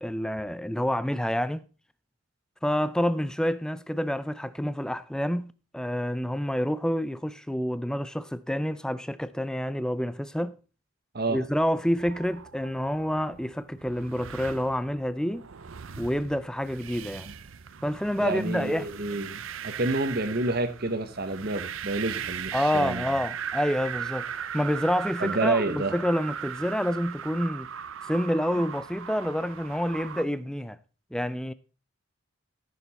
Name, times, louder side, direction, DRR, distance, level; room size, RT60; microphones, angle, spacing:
voice 1, 0.0-1.6 2.6-10.6 11.3-15.5 16.0-17.3 17.8-18.9 22.5-27.7 28.1-30.8 31.1-31.5, equal, 5° left, 0.4 m, -28 dB
sound 1, 11.7-30.2, right 8 dB, 70° right, 0.6 m, -38 dB
voice 2, 18.2-23.1 25.2-26.0, right 2 dB, 45° right, 1.1 m, -29 dB
14.5 x 6.9 x 4.2 m
head